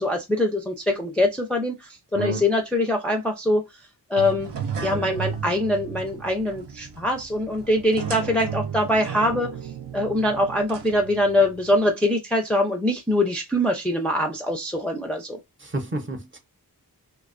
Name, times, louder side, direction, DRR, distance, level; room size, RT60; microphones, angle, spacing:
voice 1, 0.0-3.6 4.1-4.5 4.8-9.5 9.9-15.4, left 1 dB, 5° left, 0.4 m, -23 dB
voice 2, 2.1-2.4 15.6-16.4, right 1 dB, 30° right, 0.7 m, -29 dB
sound 1, 4.2-11.7, right 7 dB, 85° right, 0.6 m, -34 dB
2.4 x 2.2 x 2.4 m
wide cardioid pair, 95°, 41 cm